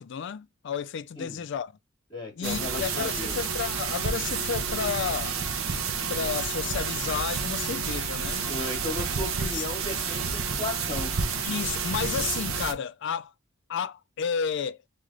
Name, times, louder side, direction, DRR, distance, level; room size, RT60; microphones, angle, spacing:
voice 1, 0.0-1.7 2.4-5.4 6.1-8.5 9.4-9.6 11.4-13.3 13.7-14.8, left 7 dB, 60° left, 0.4 m, -32 dB
voice 2, 2.1-3.4 8.5-11.1, left 2 dB, 30° left, 1.6 m, -35 dB
sound 1, 2.4-12.7, right 5 dB, 80° right, 0.8 m, -30 dB
3.7 x 3.3 x 3.7 m
head